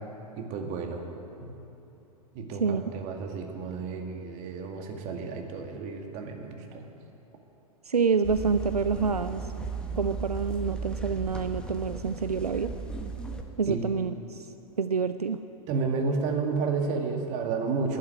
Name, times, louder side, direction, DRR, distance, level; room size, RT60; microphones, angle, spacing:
voice 1, 0.4-1.0 1.4-1.5 2.3-6.8 13.7-13.8 15.7-18.0, right 4 dB, 40° right, 3 dB, 2.0 m, -31 dB
voice 2, 7.9-9.5 9.9-12.7 13.6-14.5 14.8-15.4, right 5 dB, 85° right, 11 dB, 0.5 m, -27 dB
sound 1, 8.2-13.4, right 4 dB, 5° left, 1.3 m, -36 dB
11.5 x 11.5 x 9.4 m, 2.9 s
figure-of-eight pair, 95°, 19 cm